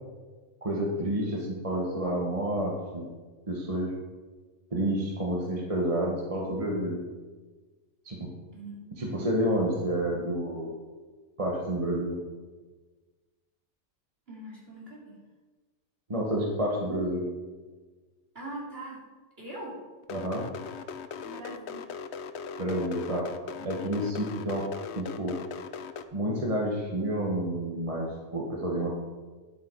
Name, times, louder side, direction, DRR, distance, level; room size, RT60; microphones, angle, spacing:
voice 1, 0.6-3.1 3.5-3.9 4.7-7.0 8.0-8.3 9.0-10.8 11.4-12.2 16.1-17.3 20.1-20.4 22.6-23.3 23.6-24.7 25.0-25.4 26.1-28.9, right 1 dB, 30° right, -3 dB, 1.4 m, -29 dB
voice 2, 8.5-9.2 14.3-15.1 18.3-19.0 19.4-19.8 21.2-21.9, right 1 dB, 50° right, -5 dB, 3.3 m, -42 dB
sound 1, 20.0-26.0, left 7 dB, 65° left, 0.9 m, -39 dB
10.5 x 7.8 x 4.7 m, 1.3 s
omnidirectional pair, 1.3 m